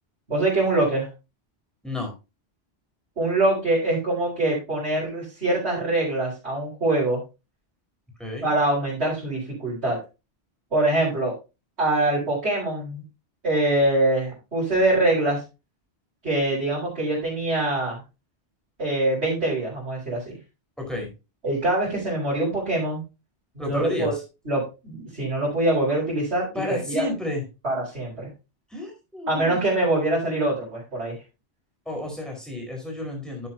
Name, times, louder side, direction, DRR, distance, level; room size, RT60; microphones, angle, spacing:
voice 1, 0.3-1.1 3.2-7.2 8.4-10.0 10.7-11.3 11.8-13.0 13.4-15.4 16.2-18.0 18.8-20.4 21.4-23.0 23.5-24.2 24.5-27.0 27.6-28.3 29.3-31.2, right 2 dB, 75° right, -7 dB, 5.5 m, -24 dB
voice 2, 20.8-21.1 23.6-24.2 26.5-27.4 28.7-29.6 31.8-33.5, left 2 dB, ahead, 0 dB, 4.5 m, -31 dB
12.0 x 7.6 x 2.8 m, 0.28 s
omnidirectional pair, 1.1 m